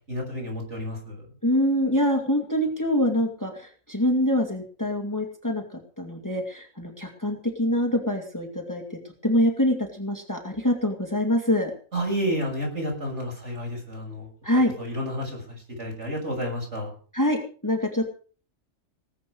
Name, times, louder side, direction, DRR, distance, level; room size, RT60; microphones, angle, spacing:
voice 1, 0.1-1.3 11.9-14.3 14.8-17.0, equal, 55° right, 0 dB, 6.9 m, -30 dB
voice 2, 1.4-11.7 14.4-14.7 17.1-18.1, left 1 dB, 15° left, 2 dB, 2.4 m, -25 dB
19.0 x 8.4 x 6.5 m, 0.41 s
omnidirectional pair, 1.4 m